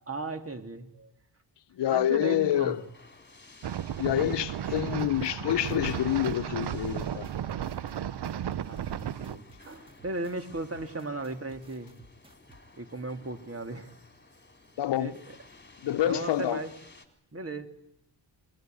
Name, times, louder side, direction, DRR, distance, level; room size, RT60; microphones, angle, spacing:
voice 1, 0.1-1.1 1.9-2.8 8.1-11.9 12.8-13.9 14.9-15.2 15.9-16.7 17.3-17.7, right 2 dB, 35° right, 3.2 m, -37 dB
voice 2, 1.7-2.8 4.0-7.3 14.8-15.1 15.8-16.6, left 12 dB, 80° left, 0.9 m, -27 dB
sound 1, 2.2-17.1, left 3 dB, 25° left, 3.8 m, -55 dB
sound 2, 3.6-9.4, right 10 dB, 70° right, 1.0 m, -34 dB
sound 3, 4.7-12.6, right 1 dB, 15° right, 2.6 m, -56 dB
24.0 x 22.0 x 9.5 m
cardioid pair, 75°, 42 cm